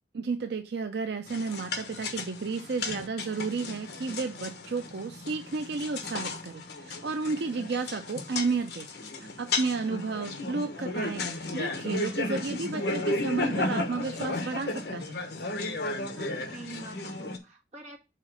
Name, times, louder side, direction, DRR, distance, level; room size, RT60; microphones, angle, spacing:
voice 1, 0.1-8.9 9.4-15.1, right 4 dB, 70° right, 6 dB, 0.5 m, -32 dB
sound 1, 1.3-17.4, left 2 dB, 70° left, 1.1 m, -34 dB
voice 2, 9.6-10.0 16.1-18.0, right 2 dB, 40° right, 1 dB, 1.5 m, -46 dB
5.7 x 4.0 x 6.1 m, 0.29 s
head